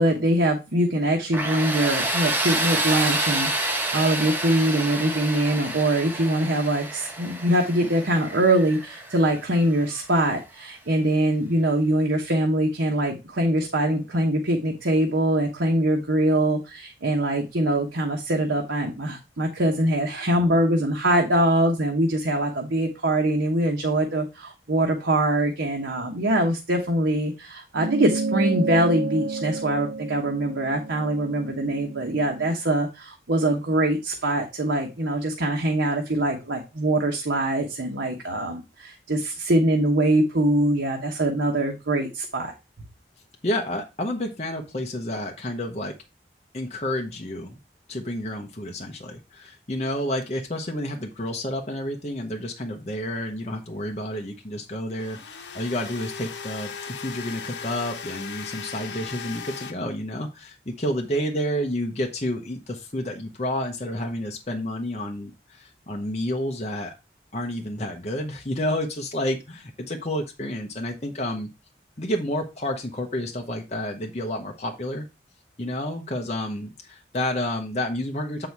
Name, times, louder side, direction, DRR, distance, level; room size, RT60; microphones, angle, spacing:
voice 1, 0.0-42.5, right 1 dB, 90° right, 1 dB, 1.1 m, -23 dB
Tools, 1.3-10.1, right 2 dB, 10° right, 1.0 m, -28 dB
sound 1, 27.7-32.5, right 3 dB, 75° right, 0.7 m, -31 dB
voice 2, 43.4-45.9 46.5-47.6 47.9-66.9 67.3-71.5 72.0-75.1 75.6-78.5, left 1 dB, 40° left, 2 dB, 0.9 m, -30 dB
sound 2, 50.2-50.3 54.9-59.7, left 6 dB, 80° left, 0.9 m, -37 dB
7.7 x 4.1 x 4.6 m, 0.26 s
head